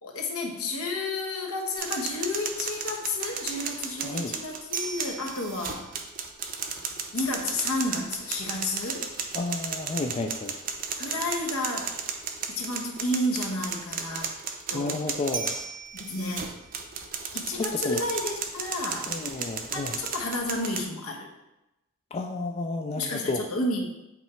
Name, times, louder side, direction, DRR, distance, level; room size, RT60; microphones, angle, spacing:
voice 1, 0.0-5.9 7.1-9.1 11.0-12.0 12.5-14.3 14.7-15.0 15.9-16.5 17.3-19.1 19.7-21.3 23.0-23.9, left 2 dB, 75° left, 1 dB, 1.2 m, -31 dB
sound 1, 1.8-20.8, right 6 dB, 40° right, 0.6 m, -34 dB
voice 2, 9.3-10.5 14.7-15.6 17.5-18.0 19.0-20.0 22.1-23.5, left 2 dB, 30° left, 3 dB, 0.3 m, -31 dB
8.3 x 3.2 x 4.4 m, 0.94 s
head